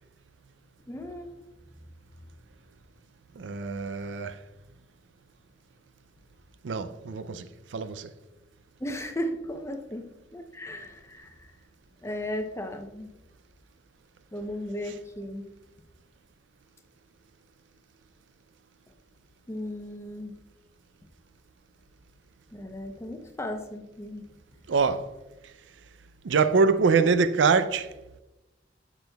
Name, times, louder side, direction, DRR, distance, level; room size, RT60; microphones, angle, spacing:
voice 1, 0.9-1.4 8.8-11.3 12.0-13.1 14.3-15.4 19.5-20.4 22.5-24.3, left 1 dB, 15° left, 0.7 m, -36 dB
voice 2, 3.4-4.4 6.6-8.1 14.8-14.9 24.7-25.1 25.4-25.5 26.2-27.9, right 4 dB, 80° right, 0.4 m, -24 dB
10.5 x 6.9 x 2.3 m
head